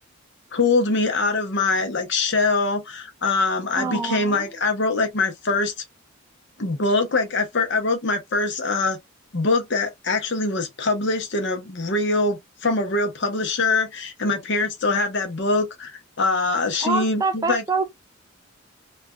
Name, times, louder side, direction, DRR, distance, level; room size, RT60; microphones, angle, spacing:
voice 1, 0.5-5.7 6.6-9.0 9.3-17.6, left 3 dB, 55° left, 0.8 m, -23 dB
voice 2, 3.7-4.4 16.8-17.9, right 3 dB, 15° right, 0.3 m, -25 dB
3.2 x 2.3 x 2.2 m
head